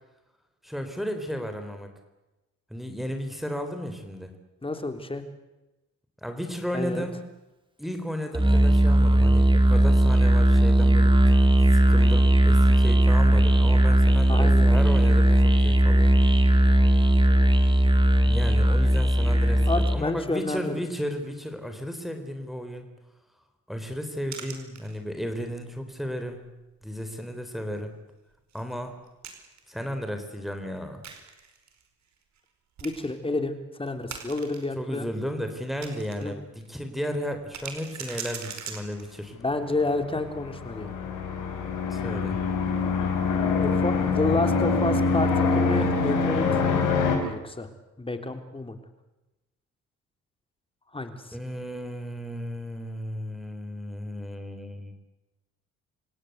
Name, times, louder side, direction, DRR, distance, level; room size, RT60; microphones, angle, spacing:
voice 1, 0.6-1.9 2.7-4.4 6.2-7.3 7.8-11.2 11.7-16.1 18.2-22.9 23.7-26.4 26.8-27.9 28.5-28.9 29.7-31.0 34.8-39.3 41.9-42.4 51.3-54.9, equal, ahead, 5 dB, 4.0 m, -34 dB
voice 2, 4.6-5.2 6.7-7.0 14.3-14.7 19.7-20.8 32.8-35.1 36.2-36.4 39.4-41.0 43.6-46.6 47.1-47.7 48.0-48.8 50.9-51.1, left 2 dB, 20° left, 7 dB, 3.5 m, -29 dB
Musical instrument, 8.3-20.1, right 1 dB, 15° right, 3.0 m, -18 dB
sound 1, 24.3-25.3 25.7-25.8 26.3-26.5 26.8-26.9 28.5-29.8 31.0-31.8 32.4-32.5 32.8-33.2 33.9-34.7 35.2-36.3 36.6-36.7 37.3-39.3, right 7 dB, 65° right, 5.0 m, -40 dB
sound 2, 39.8-47.2, left 4 dB, 90° left, 5.6 m, -25 dB
29.0 x 17.5 x 8.1 m, 1.0 s
cardioid pair, 90°, 30 cm